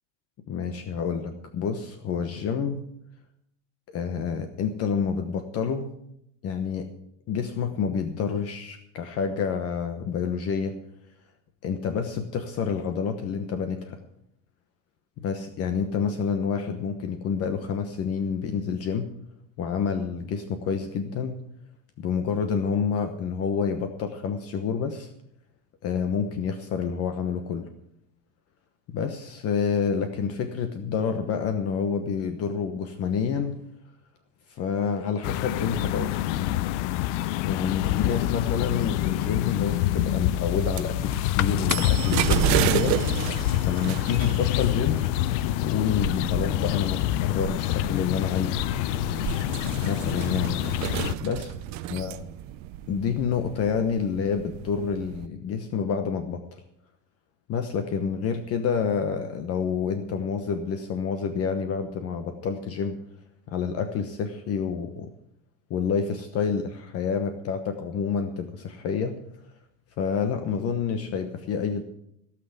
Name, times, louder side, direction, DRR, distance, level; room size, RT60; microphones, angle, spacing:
voice 1, 0.5-2.8 3.9-5.9 6.4-6.9 7.3-10.8 11.6-14.0 15.2-19.1 19.6-21.4 22.0-25.1 25.8-27.7 28.9-33.6 34.5-36.6 37.4-43.0 43.6-45.1 45.6-48.6 49.8-50.6 51.2-51.5 51.9-52.2 52.9-56.6 57.5-63.0 63.5-65.1 65.7-69.2 70.0-71.8, left 6 dB, 40° left, 7 dB, 1.1 m, -28 dB
sound 1, 35.2-51.1, left 14 dB, 75° left, 0.6 m, -26 dB
sound 2, 39.9-55.3, right 14 dB, 50° right, 0.7 m, -32 dB
17.0 x 6.0 x 8.1 m, 0.77 s
cardioid pair, 145°, 36 cm